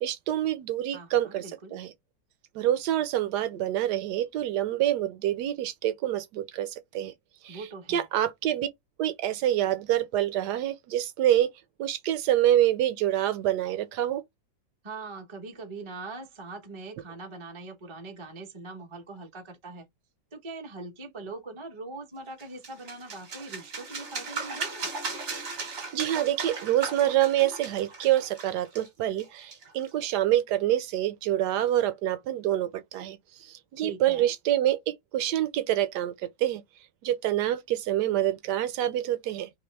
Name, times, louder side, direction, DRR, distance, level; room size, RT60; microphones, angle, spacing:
voice 1, 0.0-1.4 1.7-1.9 2.5-7.1 7.4-7.6 7.9-8.7 9.0-11.5 11.8-14.2 25.6-33.2 33.4-36.6 37.0-39.5, right 12 dB, 70° right, 1.1 m, -26 dB
voice 2, 0.9-1.8 7.5-8.1 14.8-19.8 20.3-24.9 33.8-34.3, right 3 dB, 25° right, 0.6 m, -42 dB
sound 1, 22.4-29.9, right 4 dB, 45° right, 1.2 m, -37 dB
3.0 x 3.0 x 3.2 m
omnidirectional pair, 2.0 m